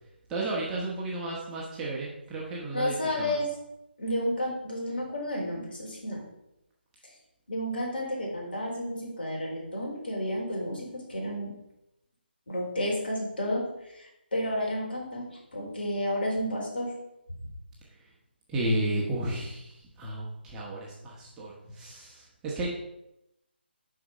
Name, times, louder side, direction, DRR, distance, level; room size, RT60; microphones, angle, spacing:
voice 1, 0.3-3.4 18.5-22.7, right 1 dB, 10° right, -6 dB, 1.5 m, -33 dB
voice 2, 2.7-3.5 4.0-6.2 7.5-11.5 12.5-16.9, left 1 dB, 55° left, -1 dB, 4.2 m, -31 dB
11.5 x 4.9 x 5.2 m, 0.85 s
figure-of-eight pair, 150°, 6 cm